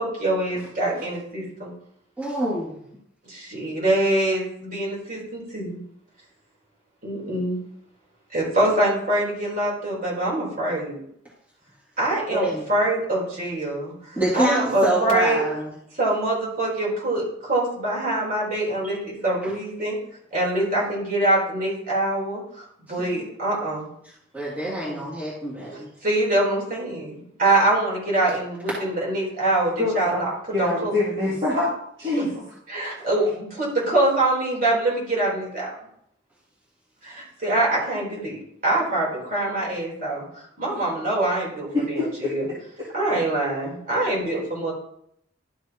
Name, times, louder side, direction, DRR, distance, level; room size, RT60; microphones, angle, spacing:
voice 1, 0.0-1.7 3.2-5.8 7.0-7.6 8.3-11.0 12.0-12.4 12.7-13.9 14.3-15.4 16.0-20.0 20.3-23.9 24.6-25.1 26.0-30.3 30.6-30.9 32.2-32.3 32.7-35.7 37.0-40.3 40.6-42.5 42.9-44.7, right 1 dB, 45° right, -4 dB, 3.8 m, -24 dB
voice 2, 2.2-2.8 12.3-12.6 14.2-15.7 18.8-18.9 19.4-19.5 24.3-25.9, right 1 dB, 10° right, -8 dB, 2.3 m, -26 dB
voice 3, 29.8-30.3 30.5-31.7 32.0-32.4 40.7-40.8 41.7-42.3 42.8-42.9, left 2 dB, 25° right, -9 dB, 2.6 m, -25 dB
12.0 x 6.7 x 3.0 m, 0.71 s
head